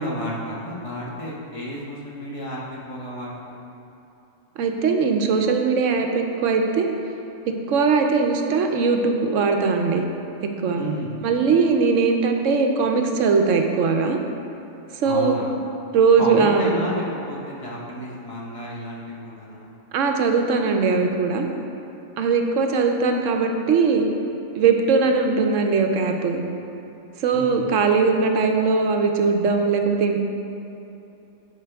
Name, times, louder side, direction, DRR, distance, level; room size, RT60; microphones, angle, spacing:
voice 1, 0.0-3.7 10.7-11.4 15.0-15.5 16.2-19.7 27.3-27.8, equal, 25° left, -5 dB, 1.3 m, -31 dB
voice 2, 4.6-6.9 7.7-10.0 10.4-10.8 11.2-14.2 14.9-15.4 15.9-16.7 19.9-21.5 22.2-24.1 24.6-26.4 27.2-30.2, right 4 dB, 80° right, 4 dB, 1.0 m, -20 dB
11.0 x 5.1 x 3.5 m, 2.9 s
omnidirectional pair, 1.3 m